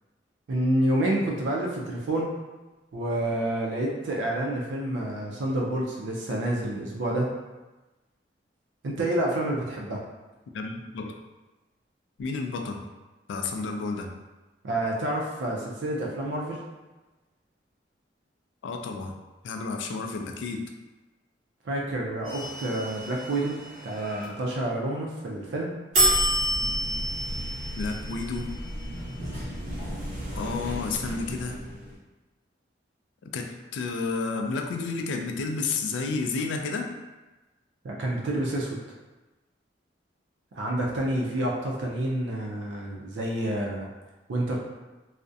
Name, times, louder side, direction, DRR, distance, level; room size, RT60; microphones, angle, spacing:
voice 1, 0.5-2.3 2.9-7.3 8.8-10.0 14.6-16.6 21.6-23.6 23.8-25.7 37.8-38.8 40.6-43.9 44.3-44.6, right 1 dB, 80° right, -2 dB, 0.4 m, -28 dB
voice 2, 10.5-11.2 12.2-12.8 13.3-14.1 18.6-19.2 19.4-20.6 27.8-28.5 30.3-31.6 33.3-36.9, left 4 dB, 85° left, 3 dB, 0.3 m, -31 dB
sound 1, 22.2-24.2 25.9-32.0, equal, 45° right, 0.8 m, -30 dB
2.3 x 2.0 x 2.6 m, 1.1 s
head